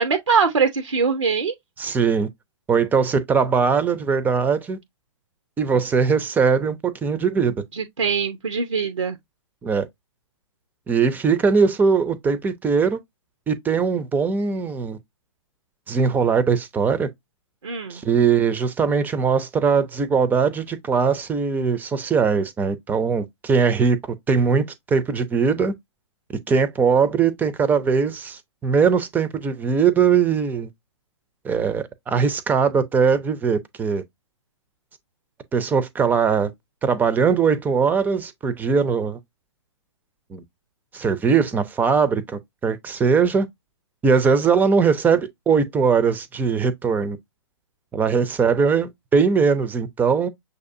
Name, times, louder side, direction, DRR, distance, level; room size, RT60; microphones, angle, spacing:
voice 1, 0.0-1.5 7.7-9.2 17.6-18.0, right 5 dB, 90° right, 0.7 m, -22 dB
voice 2, 1.8-2.3 2.7-4.8 5.6-7.5 9.6-9.9 10.9-13.0 13.5-15.0 15.9-17.1 17.9-24.0 24.3-25.7 26.5-30.7 31.4-34.0 35.5-36.5 36.8-39.2 40.3-40.4 40.9-43.5 44.0-47.2 47.9-50.3, right 5 dB, 10° right, 0.5 m, -20 dB
6.3 x 2.7 x 2.5 m
hypercardioid pair, 125°, 15 cm